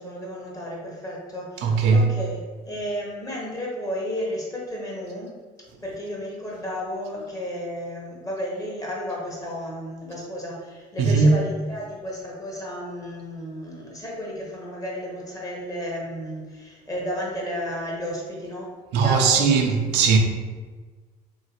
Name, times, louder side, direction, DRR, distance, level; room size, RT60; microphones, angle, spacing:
voice 1, 0.0-5.3 5.8-18.7 19.0-19.5, equal, 20° left, 1.0 m, -33 dB
voice 2, 1.6-2.1 11.0-11.4 18.9-20.2, right 5 dB, 85° right, 0.5 m, -18 dB
3.2 x 2.8 x 2.8 m
cardioid pair, 110°, 17 cm